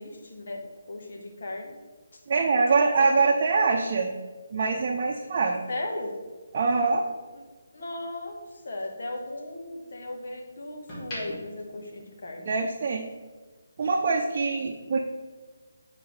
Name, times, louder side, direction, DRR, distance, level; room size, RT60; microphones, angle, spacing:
voice 1, 0.0-1.7 2.1-2.2 3.0-3.3 5.7-6.1 7.3-7.4 7.7-12.5, left 2 dB, 60° left, 1 dB, 1.5 m, -37 dB
voice 2, 2.3-4.1 4.5-5.6 6.5-7.0 12.4-13.1 13.8-15.0, right 4 dB, 45° right, 1 dB, 0.7 m, -24 dB
sound 1, 6.0-8.4 8.8-10.2 10.6-12.8 13.1-13.3, equal, 25° left, 2.3 m, -44 dB
9.2 x 4.9 x 3.4 m, 1.3 s
figure-of-eight pair, 155°, 0 cm